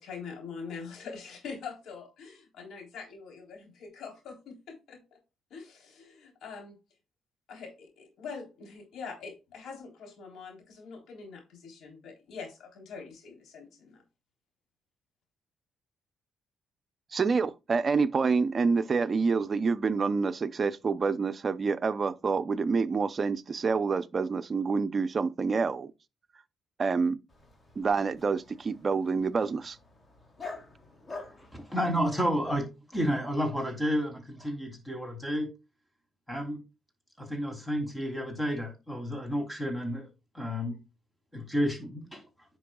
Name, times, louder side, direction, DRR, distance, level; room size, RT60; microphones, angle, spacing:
voice 1, 0.0-5.0 5.5-6.8 7.5-14.0, left 5 dB, 75° left, 3.5 m, -44 dB
voice 2, 17.1-25.9 26.8-27.2 27.8-29.8, right 4 dB, 40° right, 0.6 m, -27 dB
Dog, 27.3-32.6, left 3 dB, 30° left, 2.8 m, -47 dB
voice 3, 31.5-35.5 36.3-36.6 37.2-40.1 40.3-40.8 41.3-42.2, equal, 5° left, 3.1 m, -31 dB
10.0 x 6.0 x 2.3 m
cardioid pair, 90°, 0 cm